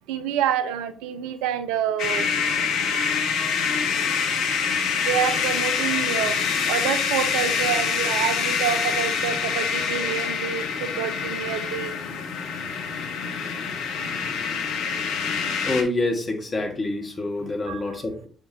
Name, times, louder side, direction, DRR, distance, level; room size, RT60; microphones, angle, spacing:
voice 1, 0.1-2.5 5.1-6.4 6.7-11.9 17.6-18.0, right 9 dB, 75° right, 0.5 m, -27 dB
sound 1, 2.0-15.8, left 6 dB, 70° left, 0.9 m, -25 dB
voice 2, 15.6-18.3, left 2 dB, 35° left, 1.7 m, -27 dB
6.9 x 5.0 x 2.8 m
hypercardioid pair, 45°, 0 cm